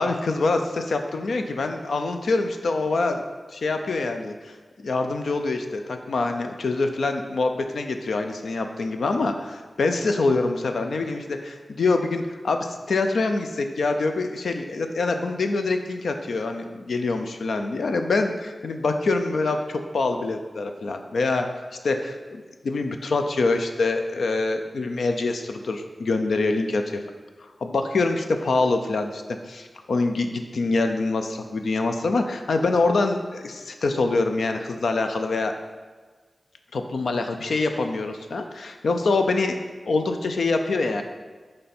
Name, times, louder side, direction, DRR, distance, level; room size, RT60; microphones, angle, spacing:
voice 1, 0.0-3.2 3.5-21.5 21.8-27.0 27.6-29.2 29.5-35.5 36.7-39.6 39.9-41.0, left 3 dB, 90° left, 6 dB, 0.4 m, -25 dB
9.1 x 3.3 x 4.3 m, 1.5 s
cardioid pair, 50°, 0 cm